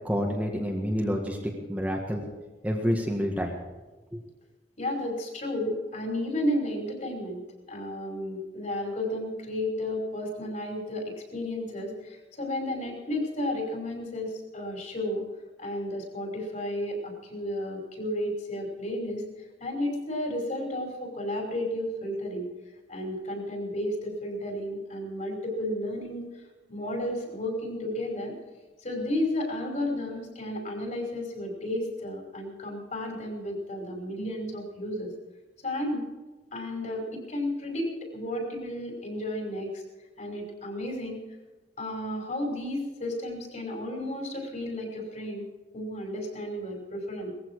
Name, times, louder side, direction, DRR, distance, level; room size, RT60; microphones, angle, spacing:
voice 1, 0.0-2.2 2.6-3.6 4.1-4.2, equal, 10° right, -1 dB, 1.8 m, -28 dB
voice 2, 4.8-7.4 7.7-15.3 15.6-19.2 19.6-22.5 22.9-26.4 26.7-28.4 28.8-35.1 35.6-36.1 36.5-39.8 40.2-41.2 41.8-45.4 45.7-47.3, left 1 dB, 45° left, 1 dB, 5.4 m, -32 dB
19.5 x 15.0 x 4.8 m, 1.2 s
head